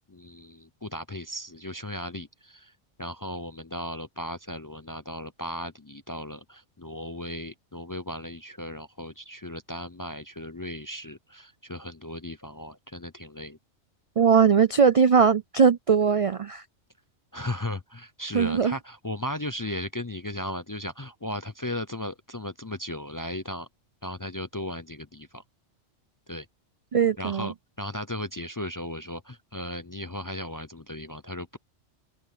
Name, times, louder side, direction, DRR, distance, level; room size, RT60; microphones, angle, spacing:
voice 1, 0.1-2.7 3.0-13.6 17.3-23.7 24.0-25.4 26.3-26.5 27.2-31.6, left 1 dB, 25° left, 0.5 m, -36 dB
voice 2, 14.2-16.6 18.3-18.8 26.9-27.5, right 6 dB, 55° right, 0.4 m, -20 dB
open air
omnidirectional pair, 1.2 m